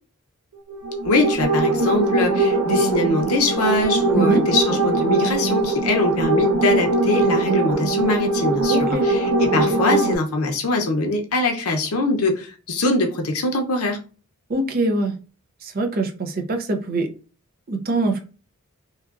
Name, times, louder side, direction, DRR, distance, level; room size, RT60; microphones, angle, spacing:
sound 1, 0.7-10.1, right 2 dB, 85° right, 0.6 m, -21 dB
voice 1, 1.0-14.0, left 2 dB, 80° left, 0.6 m, -22 dB
voice 2, 8.7-9.1 14.5-15.2 15.6-17.1 17.7-18.2, right 2 dB, 40° right, 0.5 m, -23 dB
2.8 x 2.4 x 2.4 m
head